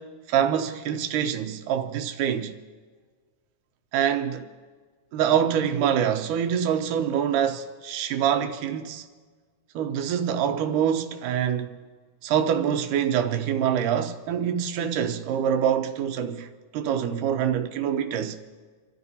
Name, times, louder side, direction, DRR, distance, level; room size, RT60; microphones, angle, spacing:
voice 1, 0.0-2.6 3.9-4.5 5.1-9.1 9.7-11.7 12.2-18.4, right 9 dB, 80° right, 2.4 m, -25 dB
29.5 x 13.5 x 2.8 m
omnidirectional pair, 3.7 m